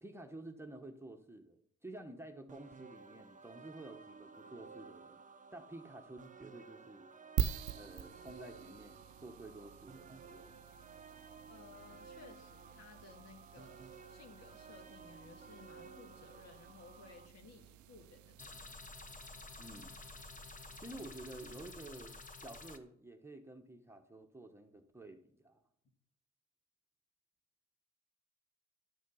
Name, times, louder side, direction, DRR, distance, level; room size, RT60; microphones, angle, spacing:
voice 1, 0.0-5.2 5.5-7.1 7.7-10.5 19.6-20.0 20.8-25.6, right 2 dB, 10° right, 4 dB, 1.1 m, -51 dB
sound 1, 2.5-17.3, right 5 dB, 25° right, 0.7 m, -55 dB
sound 2, 7.4-22.1, right 11 dB, 75° right, 0.5 m, -46 dB
voice 2, 11.5-18.6, left 4 dB, 60° left, 5 dB, 2.0 m, -58 dB
sound 3, 18.4-22.8, left 3 dB, 25° left, 1.1 m, -51 dB
11.5 x 6.3 x 5.6 m, 0.67 s
cardioid pair, 90°, 30 cm